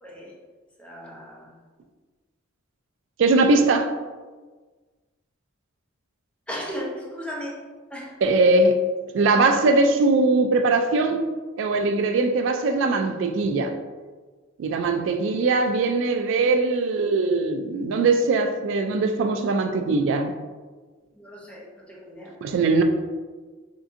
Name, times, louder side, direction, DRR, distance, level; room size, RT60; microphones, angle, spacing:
voice 1, 0.0-0.3 0.8-1.6 6.5-7.6 7.9-8.2 14.9-15.1 21.1-22.3, equal, 5° left, -4 dB, 0.6 m, -36 dB
voice 2, 3.2-3.9 8.2-8.8 9.1-11.2 11.6-13.7 14.6-20.4 22.4-22.8, right 3 dB, 60° right, 7 dB, 0.3 m, -21 dB
3.7 x 2.5 x 2.5 m, 1.3 s
head